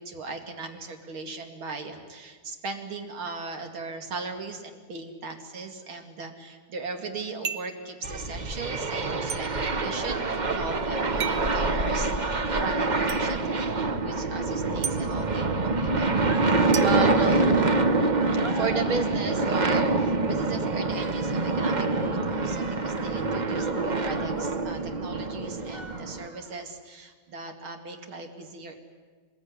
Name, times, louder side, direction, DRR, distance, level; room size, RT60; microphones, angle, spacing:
voice 1, 0.0-16.4 16.8-17.5 18.5-28.8, right 4 dB, 85° right, 4 dB, 3.2 m, -37 dB
sound 1, 7.4-7.8 9.3-9.4 11.2-11.5 13.1-13.2 14.8-15.0 16.7-17.8, right 7 dB, 60° right, 1.7 m, -34 dB
sound 2, 8.0-26.3, right 3 dB, 35° right, 0.8 m, -26 dB
sound 3, 16.2-25.2 25.6-26.6, right 2 dB, 15° right, 2.7 m, -43 dB
24.5 x 21.0 x 9.9 m, 1.5 s
omnidirectional pair, 2.2 m